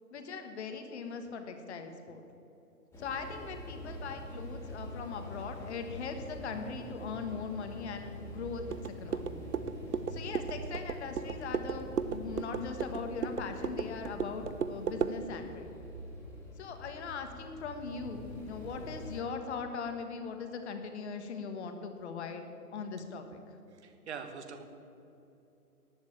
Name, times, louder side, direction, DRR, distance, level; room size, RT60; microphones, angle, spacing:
voice 1, 0.1-2.2 3.0-9.4 10.1-15.7 16.6-23.4, left 5 dB, 45° left, 6 dB, 1.4 m, -40 dB
sound 1, 2.9-19.2, equal, 5° left, 2.1 m, -45 dB
sound 2, 8.7-15.2, right 6 dB, 70° right, 0.9 m, -36 dB
voice 2, 23.7-24.6, right 6 dB, 45° right, 7 dB, 1.5 m, -43 dB
11.5 x 9.6 x 8.6 m, 2.9 s
figure-of-eight pair, 135°, 47 cm